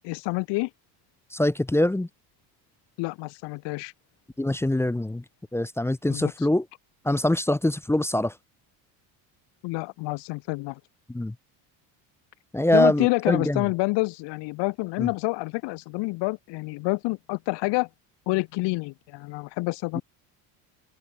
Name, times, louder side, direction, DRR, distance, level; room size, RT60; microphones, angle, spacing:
voice 1, 0.0-0.7 3.0-3.9 6.1-6.3 9.6-10.8 12.7-17.9 18.3-20.0, left 24 dB, 75° left, 1.5 m, -28 dB
voice 2, 1.3-2.1 4.4-5.2 5.5-6.7 7.0-8.3 11.1-11.3 12.5-13.6 15.0-15.1 19.9-20.0, left 1 dB, 5° left, 0.8 m, -24 dB
cardioid pair, 125°, 43 cm